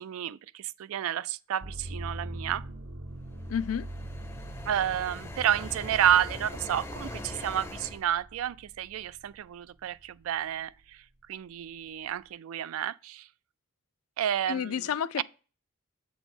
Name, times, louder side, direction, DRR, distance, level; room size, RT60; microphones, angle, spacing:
voice 1, 0.0-2.7 4.7-11.0 11.3-13.3 14.2-14.9 15.2-15.3, right 10 dB, 75° right, 0.3 m, -30 dB
sound 1, 1.6-9.4 9.9-10.7, right 1 dB, 60° right, 0.8 m, -43 dB
sound 2, 3.3-8.0, left 1 dB, 10° left, 0.5 m, -41 dB
voice 2, 3.5-3.9 14.5-15.2, left 8 dB, 85° left, 0.4 m, -30 dB
7.9 x 3.0 x 6.1 m
head